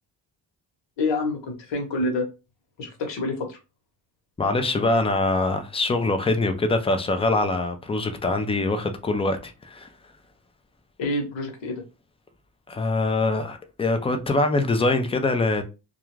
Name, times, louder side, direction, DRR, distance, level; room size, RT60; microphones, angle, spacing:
voice 1, 1.0-2.3 2.8-3.6 11.0-11.8, left 2 dB, 70° left, 1.1 m, -27 dB
voice 2, 4.4-9.9 12.7-15.6, left 2 dB, 15° left, 0.4 m, -23 dB
2.4 x 2.3 x 3.0 m
cardioid pair, 95°, 45 cm